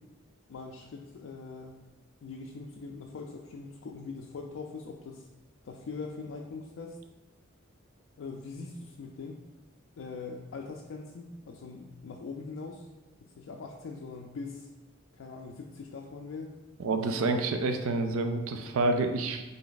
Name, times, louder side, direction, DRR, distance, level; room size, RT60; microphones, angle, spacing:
voice 1, 0.5-1.8 2.2-5.3 5.6-7.0 8.2-9.4 10.0-12.9 13.2-14.7 15.1-16.5, left 4 dB, 70° left, 0 dB, 0.4 m, -42 dB
voice 2, 16.8-19.4, right 2 dB, 80° right, 6 dB, 0.4 m, -28 dB
3.9 x 3.3 x 3.9 m, 1.1 s
head